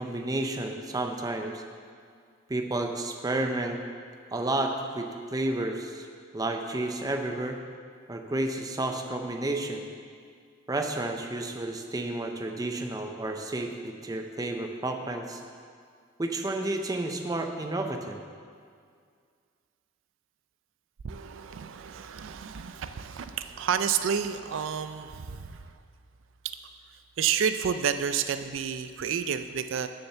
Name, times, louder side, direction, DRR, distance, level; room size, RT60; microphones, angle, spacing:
voice 1, 0.0-1.6 2.5-3.8 4.3-6.1 6.3-7.6 8.1-9.9 10.7-15.4 16.2-18.2, right 2 dB, 20° right, 4 dB, 0.5 m, -31 dB
voice 2, 21.0-25.7 27.2-29.9, right 7 dB, 75° right, 10 dB, 0.4 m, -30 dB
7.1 x 6.5 x 6.8 m, 2.2 s
head